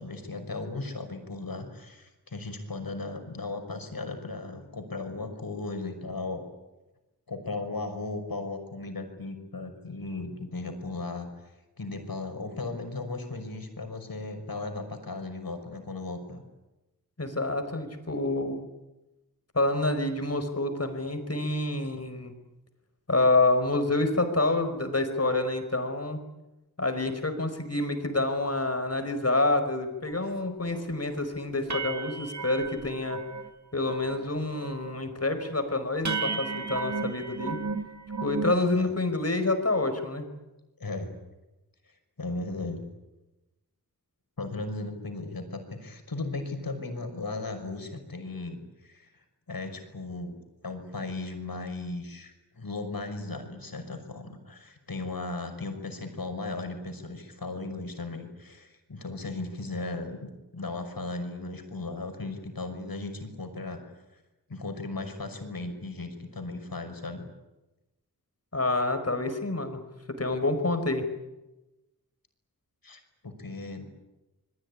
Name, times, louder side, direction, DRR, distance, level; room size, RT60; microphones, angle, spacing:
voice 1, 0.0-6.4 7.3-11.3 11.8-16.4 38.5-38.9 40.8-41.1 41.9-42.8 44.4-50.4 50.6-63.8 64.1-64.2 64.5-67.2 72.8-73.8, left 3 dB, 65° left, 6 dB, 5.9 m, -36 dB
voice 2, 17.2-18.6 19.5-22.3 23.1-26.2 26.8-33.2 33.7-37.6 38.2-40.3 68.5-69.8 70.2-71.0, left 2 dB, 40° left, 7 dB, 4.9 m, -27 dB
sound 1, 30.2-30.3 30.7-30.9 31.2-31.3 31.7-33.5 33.8-34.3 34.5-35.0 35.4-35.5 36.1-38.6, right 4 dB, 50° right, 2.2 m, -34 dB
28.0 x 21.5 x 9.9 m, 1.0 s
wide cardioid pair, 70°, 37 cm